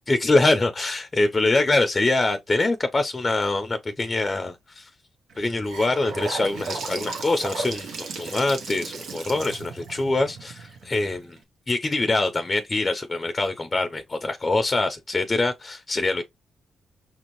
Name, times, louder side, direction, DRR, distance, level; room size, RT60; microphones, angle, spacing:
voice 1, 0.1-4.9 5.4-11.4 11.7-16.2, left 2 dB, 30° left, 0.5 m, -24 dB
Gurgling / Sink (filling or washing) / Bathtub (filling or washing), 5.3-11.4, right 4 dB, 80° right, 0.9 m, -35 dB
5.7 x 2.6 x 3.0 m
cardioid pair, 60°, 0 cm